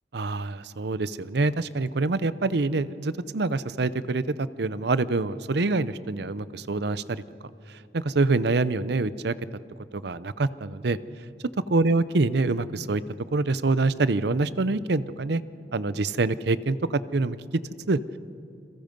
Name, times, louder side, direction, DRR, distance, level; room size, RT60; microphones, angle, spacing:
voice 1, 0.1-7.2 7.9-9.3 9.9-11.0 11.7-13.0 13.3-15.4 15.7-17.4 17.9-18.0, right 3 dB, 70° right, 16 dB, 0.7 m, -25 dB
29.5 x 21.5 x 5.3 m, 2.5 s
head